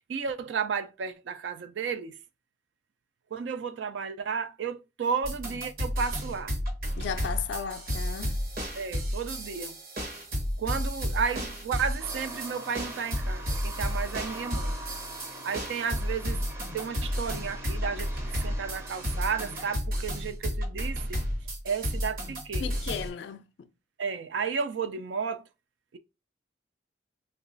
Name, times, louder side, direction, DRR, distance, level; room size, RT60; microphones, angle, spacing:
voice 1, 0.1-2.1 3.3-6.6 8.8-9.8 10.6-14.8 15.4-16.5 16.7-21.2 21.6-22.7 24.0-25.4 25.9-26.0, right 6 dB, 85° right, 0.4 m, -33 dB
sound 1, 5.2-23.1, equal, 55° right, 0.9 m, -32 dB
voice 2, 7.0-8.4 22.6-23.7, left 7 dB, 75° left, 0.3 m, -35 dB
sound 2, 12.0-19.8, right 1 dB, 15° right, 0.5 m, -44 dB
3.0 x 2.2 x 3.8 m
head